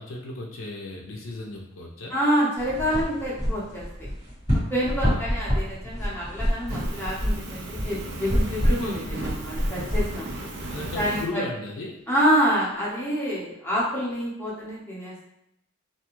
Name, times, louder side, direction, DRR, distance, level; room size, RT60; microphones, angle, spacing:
voice 1, 0.0-2.1 5.0-5.3 8.5-9.0 10.7-12.0, left 2 dB, 70° left, -1 dB, 0.4 m, -36 dB
voice 2, 2.1-4.1 4.5-10.5 10.9-11.4 12.1-15.3, equal, 10° left, -7 dB, 0.7 m, -27 dB
sound 1, 2.6-11.1, equal, 35° right, 1.4 m, -28 dB
Fire, 6.7-11.3, right 2 dB, 55° right, 0.4 m, -36 dB
2.4 x 2.2 x 3.0 m, 0.82 s
head